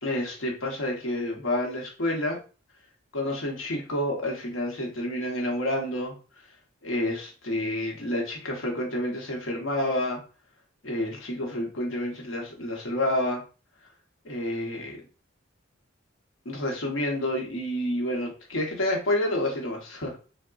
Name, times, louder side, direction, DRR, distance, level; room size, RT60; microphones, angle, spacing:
voice 1, 0.0-2.4 3.1-6.1 6.8-10.2 10.8-13.4 14.2-15.0 16.4-20.2, left 1 dB, 80° left, 0 dB, 0.8 m, -29 dB
3.5 x 2.0 x 2.3 m, 0.35 s
head